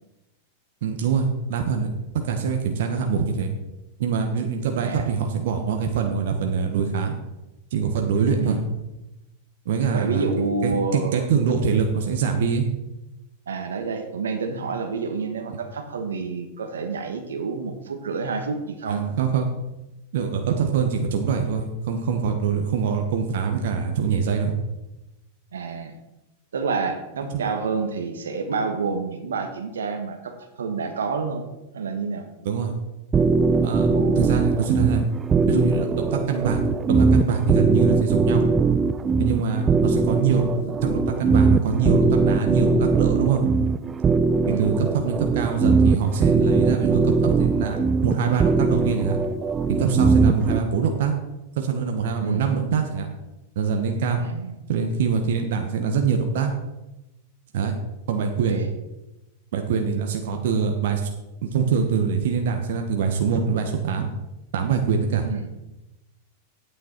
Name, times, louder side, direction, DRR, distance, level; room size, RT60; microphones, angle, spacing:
voice 1, 0.8-1.9 2.2-3.5 4.0-7.2 7.7-8.6 9.6-10.2 10.6-12.7 18.9-19.5 20.1-24.5 27.3-27.5 32.4-32.7 33.6-33.9 34.2-35.0 35.4-36.6 36.9-38.4 39.2-43.4 44.6-47.8 48.0-49.2 49.7-51.1 51.6-53.1 53.5-54.2 54.7-56.5 57.5-57.8 58.1-58.6 59.5-61.1 61.5-64.1 64.5-65.2, right 6 dB, 65° right, 4 dB, 1.2 m, -24 dB
voice 2, 9.9-11.3 13.5-19.2 25.5-26.0 26.5-31.5 31.7-32.3 33.9-34.3 44.4-44.7 52.2-52.4 54.1-54.6 58.2-58.7 65.2-65.4, right 4 dB, 80° right, 6 dB, 1.3 m, -28 dB
sound 1, 33.1-50.6, right 4 dB, 20° right, 0.5 m, -21 dB
9.2 x 9.0 x 4.5 m, 0.99 s
hypercardioid pair, 100°, 0 cm